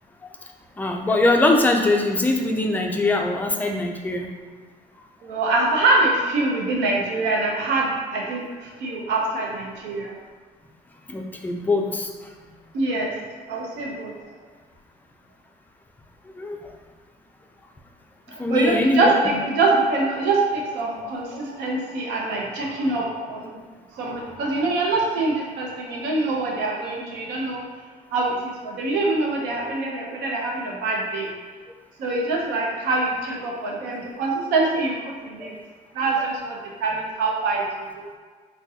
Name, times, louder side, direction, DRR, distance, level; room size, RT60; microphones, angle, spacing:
voice 1, 0.8-4.3 11.1-12.1 16.4-16.6 18.4-19.4 35.4-35.5, left 2 dB, 10° left, 2 dB, 0.3 m, -22 dB
voice 2, 5.2-10.2 12.7-13.1 13.5-14.1 18.3-23.6 23.9-27.6 28.1-31.3 32.0-35.5 35.9-38.1, right 2 dB, 90° right, -1 dB, 0.7 m, -24 dB
3.6 x 2.2 x 2.7 m, 1.5 s
cardioid pair, 110°, 17 cm